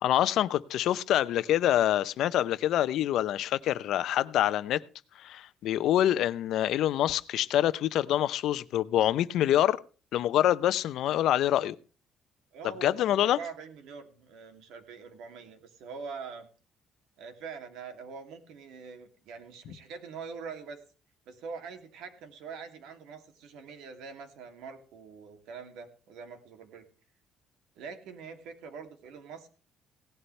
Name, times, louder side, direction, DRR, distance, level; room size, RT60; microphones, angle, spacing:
voice 1, 0.0-4.8 5.2-9.8 10.1-11.8 12.8-13.4, left 12 dB, 70° left, 0.7 m, -26 dB
voice 2, 12.5-16.5 17.2-20.8 21.3-26.9 27.8-29.6, right 5 dB, 85° right, 2.7 m, -44 dB
17.5 x 11.5 x 3.3 m
cardioid pair, 140°, 0 cm